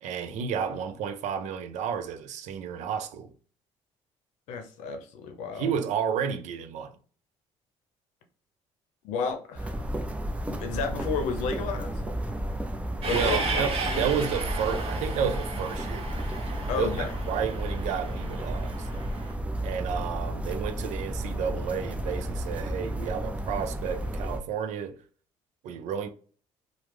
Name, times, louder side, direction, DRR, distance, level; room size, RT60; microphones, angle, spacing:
voice 1, 0.0-3.3 5.5-7.0 13.1-16.1 16.8-18.9 19.6-25.0 25.6-26.1, right 7 dB, 70° right, 0.5 m, -31 dB
voice 2, 4.5-5.7 9.0-9.7 10.5-12.0 13.0-14.0 16.7-17.1, left 5 dB, 80° left, 0.7 m, -32 dB
sound 1, 9.6-24.4, right 1 dB, 10° right, 0.5 m, -33 dB
Train, 13.0-19.3, right 3 dB, 50° right, 0.9 m, -34 dB
3.1 x 2.0 x 3.3 m
supercardioid pair, 75°, 13 cm